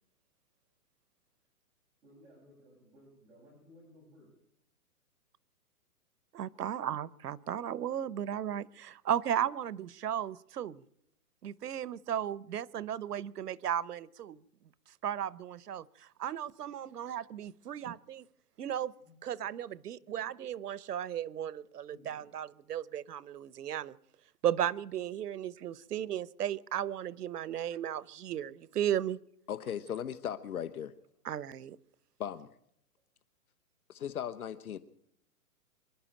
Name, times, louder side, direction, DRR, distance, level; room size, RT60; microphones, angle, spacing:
voice 1, 2.0-4.3 16.9-17.1 19.0-19.2 20.0-20.4 21.9-22.3, equal, 10° right, 6.8 m, -59 dB
voice 2, 6.3-10.8 11.4-14.4 15.0-18.3 18.6-18.9 19.2-24.0 24.4-29.2 31.2-31.8, right 10 dB, 90° right, 0.9 m, -35 dB
voice 3, 29.5-30.9 32.2-32.5 33.9-34.8, left 9 dB, 70° left, 1.2 m, -37 dB
25.0 x 11.5 x 8.9 m
hypercardioid pair, 170°, 45 cm